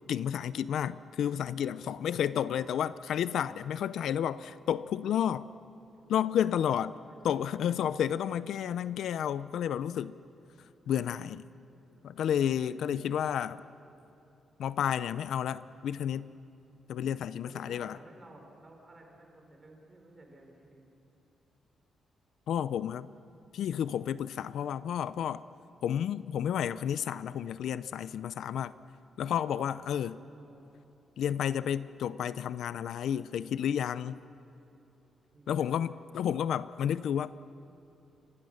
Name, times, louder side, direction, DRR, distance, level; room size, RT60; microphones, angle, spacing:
voice 1, 0.1-5.5 6.1-6.9 7.2-10.2 10.9-11.4 12.0-13.6 14.6-16.3 16.9-17.9 22.5-23.1 23.5-25.4 25.8-28.7 29.2-30.2 31.2-34.2 35.5-37.3, left 9 dB, 70° left, 0.5 m, -31 dB
voice 2, 2.1-3.2 3.7-4.3 6.3-7.7 10.8-10.9 12.5-13.6 17.4-20.8 24.3-25.2 29.8-30.7 35.3-36.2, right 2 dB, 25° right, 4.2 m, -55 dB
28.5 x 24.5 x 6.5 m
wide cardioid pair, 170°, 0 cm